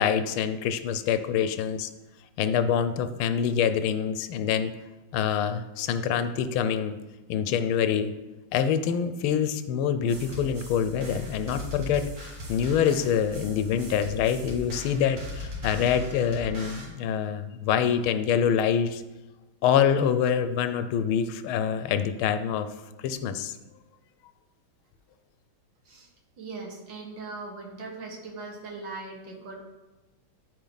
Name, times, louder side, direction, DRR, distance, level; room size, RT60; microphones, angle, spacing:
voice 1, 0.0-1.9 2.4-4.8 5.1-7.0 7.3-8.1 8.5-19.0 19.6-22.7 23.0-23.6, left 8 dB, 85° left, 10 dB, 1.5 m, -25 dB
sound 1, 10.1-16.9, left 1 dB, 45° right, 2.1 m, -39 dB
voice 2, 26.4-29.6, right 3 dB, 65° right, 0 dB, 2.2 m, -39 dB
12.5 x 4.7 x 4.0 m, 1.1 s
omnidirectional pair, 2.3 m